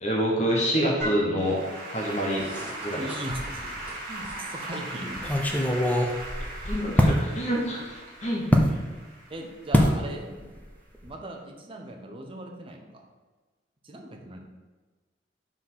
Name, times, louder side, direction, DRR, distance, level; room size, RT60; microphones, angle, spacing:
voice 1, 0.0-1.6 1.9-2.5 2.8-3.1 6.6-8.5, equal, 40° left, -2 dB, 1.0 m, -26 dB
Applause / Keyboard (musical), 1.0-10.3, right 1 dB, 50° right, 1.7 m, -39 dB
sound 1, 2.0-5.3, equal, 10° right, 1.9 m, -44 dB
voice 2, 2.9-3.7 4.1-5.1 9.3-10.3 11.0-13.1 13.8-14.4, right 1 dB, 30° right, 2 dB, 0.8 m, -38 dB
sound 2, 3.3-3.9 4.2-4.3 5.2-7.2 8.5-8.7 9.7-10.0 10.3-10.7 10.9-11.1, equal, 10° left, 0.5 m, -23 dB
4.8 x 4.1 x 5.6 m, 1.3 s
head